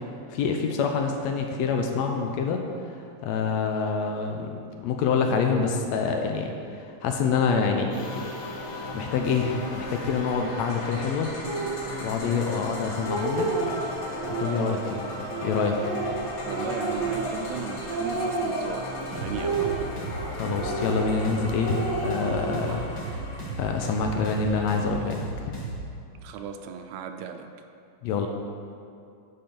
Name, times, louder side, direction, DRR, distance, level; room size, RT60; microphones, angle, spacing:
voice 1, 0.3-2.6 3.2-8.3 8.9-11.3 12.0-13.5 14.4-15.1 15.4-15.8 20.3-23.2 23.6-25.2 28.0-28.3, left 5 dB, 80° left, 3 dB, 1.8 m, -26 dB
sound 1, 7.9-25.2, left 1 dB, 60° left, 2.3 m, -37 dB
Speech, 11.4-11.8 12.5-12.6 12.9-13.8 14.2-14.8 15.3-17.6 17.9-18.8 19.3-20.2 20.6-21.3 21.6-22.8, right 3 dB, 40° right, 1.1 m, -30 dB
voice 2, 16.5-19.9 26.2-27.5, right 7 dB, 80° right, 6 dB, 1.8 m, -36 dB
sound 2, 19.1-25.8, right 3 dB, 40° left, 2.0 m, -35 dB
11.5 x 4.3 x 5.2 m, 2.4 s
omnidirectional pair, 3.3 m